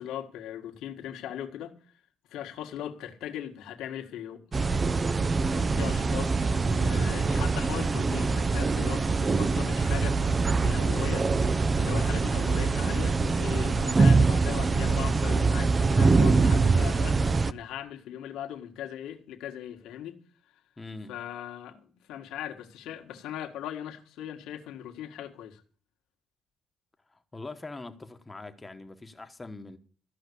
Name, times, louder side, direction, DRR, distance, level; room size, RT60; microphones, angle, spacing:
voice 1, 0.0-1.7 2.3-4.4 5.5-10.2 10.5-11.3 11.8-20.2 20.5-20.6 21.1-25.6, left 10 dB, 90° left, 1.7 m, -39 dB
sound 1, 4.5-17.5, right 4 dB, 30° right, 0.6 m, -24 dB
voice 2, 20.8-21.1 27.1-29.8, left 3 dB, 20° left, 1.2 m, -42 dB
14.5 x 5.9 x 8.4 m
cardioid pair, 90°, 0 cm